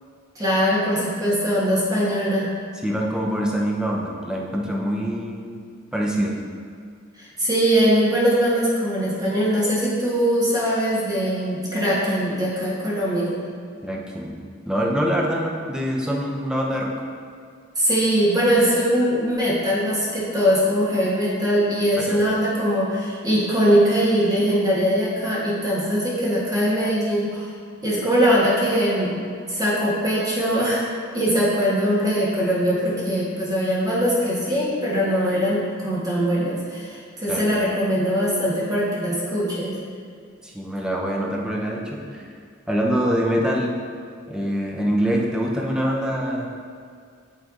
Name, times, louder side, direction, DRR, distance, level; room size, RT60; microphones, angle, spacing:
voice 1, 0.3-2.5 7.1-13.3 17.7-27.5 27.8-29.2 29.5-30.9 31.1-39.7, equal, 20° right, -7 dB, 1.5 m, -21 dB
voice 2, 2.8-5.6 5.9-6.3 13.8-14.4 14.7-16.9 22.0-22.2 37.3-37.5 40.4-42.2 42.7-43.7 44.3-46.5, equal, 5° right, -2 dB, 0.6 m, -24 dB
8.7 x 3.3 x 3.7 m, 2.2 s
head